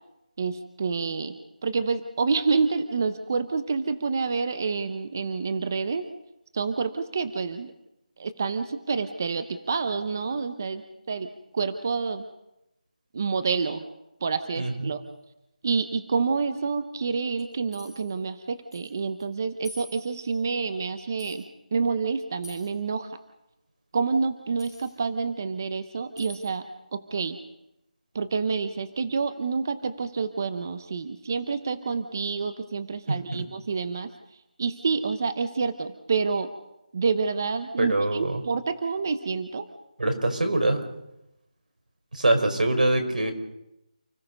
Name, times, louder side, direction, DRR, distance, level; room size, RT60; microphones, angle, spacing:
voice 1, 0.4-1.4 1.6-6.1 6.5-7.7 8.2-10.8 11.1-12.2 13.1-13.8 14.2-15.0 15.6-21.4 21.7-23.2 23.9-26.6 26.9-27.4 28.1-34.1 34.6-36.5 36.9-39.7, right 4 dB, 25° right, 11 dB, 0.7 m, -28 dB
voice 2, 14.6-14.9 33.1-33.2 37.8-38.4 40.0-40.8 42.1-43.3, right 2 dB, 85° right, 5 dB, 5.0 m, -24 dB
sound 1, 17.4-18.1 18.7-18.9 19.2-19.3 19.6-20.3 21.2-21.4 22.4-22.8 24.6-24.9 26.2-26.5, left 1 dB, 5° right, 7.6 m, -47 dB
29.0 x 17.0 x 5.4 m, 0.87 s
figure-of-eight pair, 175°, 4 cm